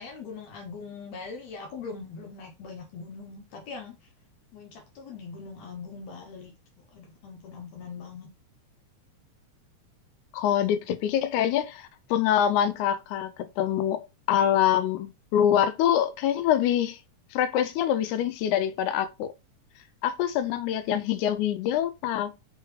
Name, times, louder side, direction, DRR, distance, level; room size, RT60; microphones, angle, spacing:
voice 1, 0.0-4.0 4.5-6.5 6.9-8.3, left 4 dB, 70° left, 1.9 m, -41 dB
voice 2, 10.3-17.0 17.3-19.3 20.0-22.3, left 10 dB, 90° left, 2.0 m, -25 dB
4.5 x 3.5 x 3.1 m
omnidirectional pair, 3.4 m